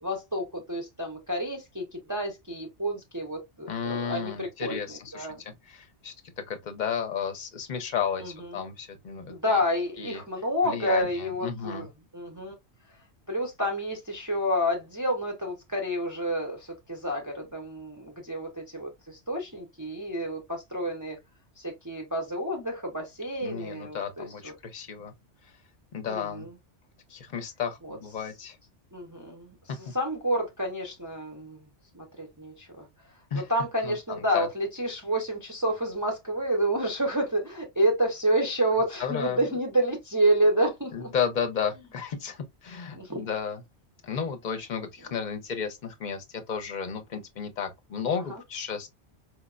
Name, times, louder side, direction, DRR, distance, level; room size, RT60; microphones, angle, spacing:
voice 1, 0.0-5.4 8.2-8.3 9.3-11.9 12.1-12.5 13.3-21.2 21.6-24.5 26.1-26.5 27.8-28.0 28.9-29.5 29.9-31.6 31.9-32.8 33.3-41.1 42.9-43.3, equal, 20° right, 0.5 m, -29 dB
voice 2, 3.7-6.1 6.5-9.6 10.0-10.2 10.6-11.9 23.4-25.1 25.9-26.5 27.1-28.6 29.7-29.8 33.3-33.5 33.8-34.5 39.0-39.4 40.9-43.6 44.0-48.9, left 7 dB, 50° left, 0.7 m, -33 dB
4.4 x 2.1 x 2.4 m
omnidirectional pair, 1.2 m